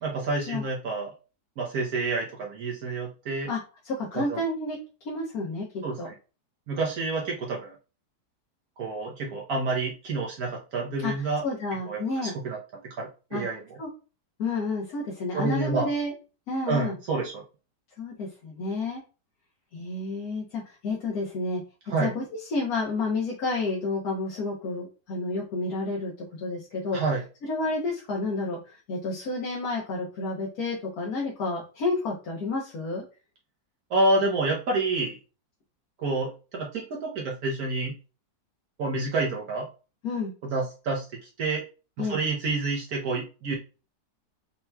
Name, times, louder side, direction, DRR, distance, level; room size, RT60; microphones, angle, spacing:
voice 1, 0.0-1.1 1.6-3.5 4.1-4.4 5.8-6.1 6.7-7.7 8.8-11.4 11.9-12.6 13.0-13.6 15.3-15.9 16.7-17.4 21.9-22.1 26.9-27.2 33.9-35.2 36.0-37.9 38.8-39.7 40.4-41.1 41.4-41.6 42.0-43.6, right 3 dB, 65° right, -2 dB, 1.3 m, -28 dB
voice 2, 3.5-4.8 5.0-6.1 11.0-12.3 13.3-13.4 13.8-13.9 14.4-16.1 16.5-17.0 18.0-19.0 19.7-21.6 22.0-27.0 27.4-33.0 40.0-40.3 42.0-42.2, left 3 dB, 65° left, -3 dB, 1.4 m, -30 dB
5.6 x 2.9 x 2.2 m, 0.33 s
omnidirectional pair, 1.8 m